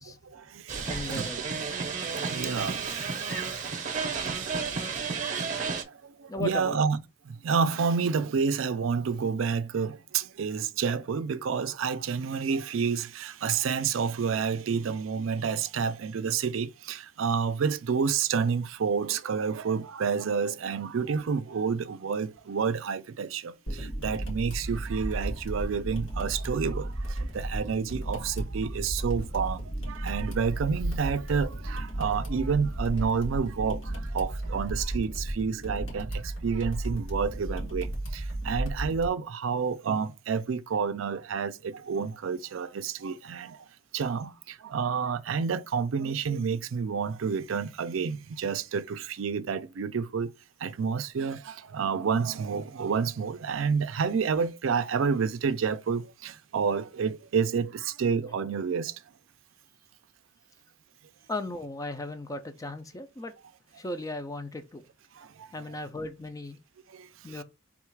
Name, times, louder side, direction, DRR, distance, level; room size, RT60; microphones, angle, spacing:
voice 1, 0.3-1.3 2.3-3.6 4.2-4.7 5.0-5.4 5.9-7.0 7.3-43.6 43.9-50.3 50.6-59.0 65.2-65.5 66.9-67.1 67.3-67.4, right 6 dB, 75° right, 0.4 m, -29 dB
sound 1, 0.7-5.8, right 5 dB, 40° right, 0.8 m, -32 dB
voice 2, 0.8-1.5 2.4-2.6 6.3-6.8 61.3-63.3 63.7-64.8 65.5-66.6 67.2-67.4, left 2 dB, 15° left, 0.4 m, -36 dB
sound 2, 23.7-39.1, right 1 dB, 80° left, 1.9 m, -34 dB
3.6 x 2.4 x 4.5 m
head